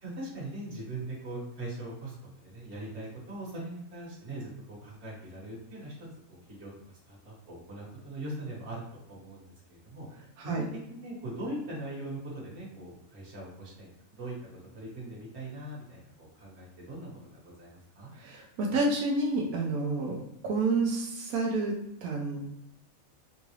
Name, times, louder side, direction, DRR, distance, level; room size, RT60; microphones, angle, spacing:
voice 1, 0.0-6.7 7.1-9.4 9.7-10.1 10.4-14.4 14.7-18.1, right 1 dB, 50° right, -5 dB, 1.6 m, -41 dB
voice 2, 18.2-20.2 20.4-21.7 22.0-22.5, right 3 dB, 90° right, 0 dB, 1.1 m, -29 dB
3.8 x 2.4 x 3.1 m, 0.81 s
omnidirectional pair, 1.5 m